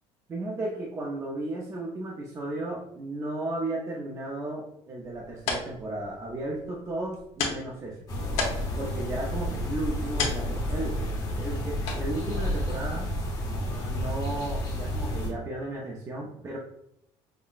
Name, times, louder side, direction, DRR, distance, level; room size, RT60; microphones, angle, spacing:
voice 1, 0.3-8.0 8.8-11.0 11.3-13.1 13.8-16.6, right 1 dB, 25° right, -2 dB, 0.5 m, -34 dB
sound 1, 5.0-14.3, left 4 dB, 80° left, 0.8 m, -37 dB
sound 2, 8.1-15.3, equal, 35° left, 1.4 m, -31 dB
5.5 x 2.1 x 2.4 m, 0.77 s
cardioid pair, 140°, 12 cm